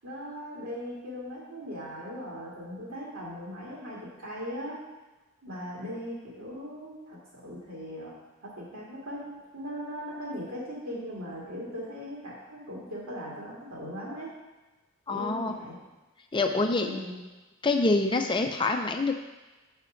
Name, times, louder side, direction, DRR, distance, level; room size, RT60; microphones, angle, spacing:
voice 1, 0.0-4.8 5.4-14.3 15.1-15.8 16.5-17.2, equal, 90° right, -5 dB, 2.3 m, -39 dB
voice 2, 15.1-15.5 16.3-16.9 17.6-19.2, left 3 dB, 20° left, 5 dB, 0.4 m, -26 dB
6.2 x 5.7 x 5.1 m, 1.1 s
head